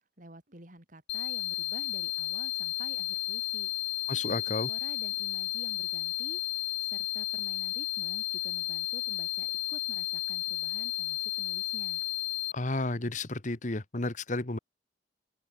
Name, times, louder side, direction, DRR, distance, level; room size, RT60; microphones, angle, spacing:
voice 1, 0.2-3.7 4.3-6.4 6.8-12.0, right 1 dB, 45° right, 5.2 m, -50 dB
sound 1, 1.1-12.5, left 16 dB, 80° left, 1.3 m, -33 dB
voice 2, 4.1-4.7 12.5-14.6, left 2 dB, 45° left, 1.4 m, -32 dB
head